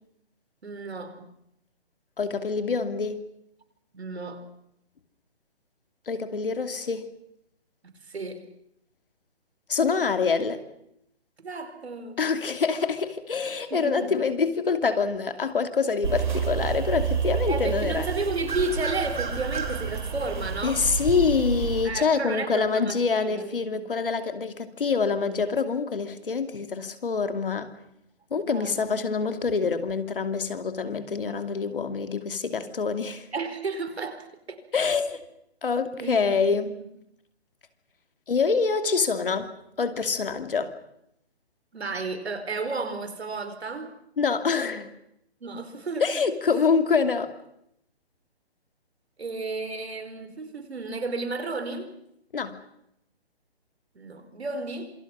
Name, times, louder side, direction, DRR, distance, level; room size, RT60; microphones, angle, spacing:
voice 1, 0.6-1.3 3.9-4.4 8.1-8.4 11.4-12.3 13.7-14.1 17.5-20.8 21.8-23.8 28.3-28.7 33.3-34.6 36.0-36.2 36.5-36.6 41.7-43.9 45.4-46.2 49.2-51.9 53.9-54.9, right 3 dB, 75° right, 4.9 m, -33 dB
voice 2, 2.2-3.2 6.1-7.0 9.7-10.6 12.2-18.1 20.6-27.7 28.3-33.3 34.7-35.2 35.6-36.7 38.3-39.5 39.8-40.7 44.2-44.9 46.0-47.3 52.3-52.6, left 5 dB, 55° left, 2.5 m, -26 dB
sound 1, 16.0-21.9, right 6 dB, 45° right, 4.3 m, -29 dB
27.0 x 25.0 x 6.1 m
hypercardioid pair, 180°, 32 cm